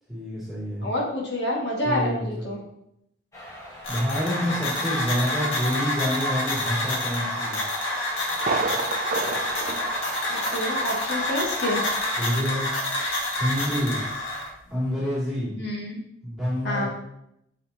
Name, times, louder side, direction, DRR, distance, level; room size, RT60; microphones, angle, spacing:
voice 1, 0.1-0.9 1.8-2.5 3.9-7.6 12.2-12.7 13.4-14.0 14.7-15.5 16.2-16.9, equal, ahead, -9 dB, 2.9 m, -27 dB
voice 2, 0.8-2.6 10.3-11.8 15.6-16.0 16.6-16.9, left 1 dB, 55° left, -3 dB, 2.3 m, -28 dB
sound 1, 3.3-12.3, left 1 dB, 15° left, 1.7 m, -38 dB
sound 2, 3.8-14.5, left 1 dB, 90° left, 2.1 m, -28 dB
Thunder, 8.4-10.9 11.2-11.3 11.9-12.0, right 4 dB, 45° right, 0.4 m, -31 dB
8.7 x 6.5 x 3.0 m, 0.79 s
head